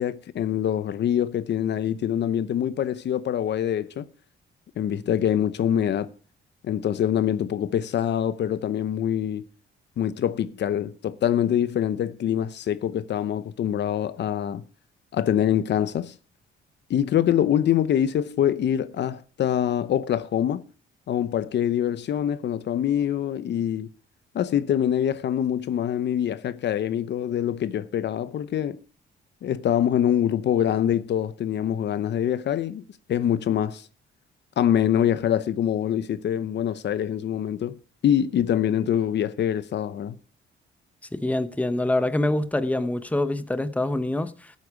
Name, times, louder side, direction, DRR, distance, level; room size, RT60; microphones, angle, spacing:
voice 1, 0.0-4.1 4.8-6.1 6.6-9.4 10.0-14.6 15.1-16.1 16.9-20.6 21.1-23.9 24.3-28.8 29.4-32.8 33.1-33.9 34.6-37.8 38.0-40.2, left 10 dB, 60° left, 0.8 m, -24 dB
voice 2, 41.1-44.5, left 1 dB, 5° left, 0.9 m, -25 dB
13.0 x 8.5 x 4.8 m
cardioid pair, 90°, 20 cm